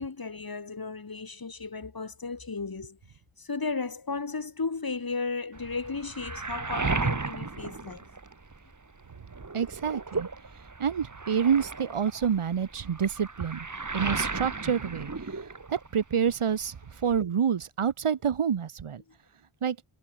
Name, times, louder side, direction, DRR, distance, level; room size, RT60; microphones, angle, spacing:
voice 1, 0.0-3.0 3.4-8.0, left 4 dB, 45° left, 4.8 m, -34 dB
Waves surf, 5.5-8.7 9.1-16.0 16.3-17.2, right 3 dB, 35° right, 4.8 m, -35 dB
voice 2, 9.5-10.3 10.8-13.7 13.9-19.0 19.6-19.8, right 7 dB, 80° right, 6.0 m, -28 dB
cardioid pair, 50°, 50 cm